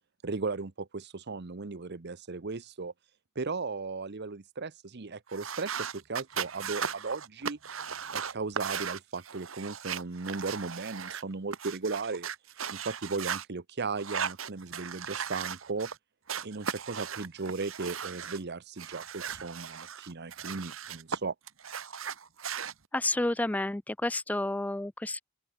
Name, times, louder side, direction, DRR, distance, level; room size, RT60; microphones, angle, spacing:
voice 1, 0.2-2.9 3.4-7.6 8.1-12.3 12.7-15.9 16.4-21.3, right 4 dB, 55° right, 0.9 m, -36 dB
sound 1, 5.3-13.4 14.0-16.0 16.3-18.4 18.8-21.2 21.5-22.7, right 7 dB, 75° right, 1.7 m, -37 dB
voice 2, 22.9-25.2, left 2 dB, 10° left, 0.4 m, -30 dB
open air
head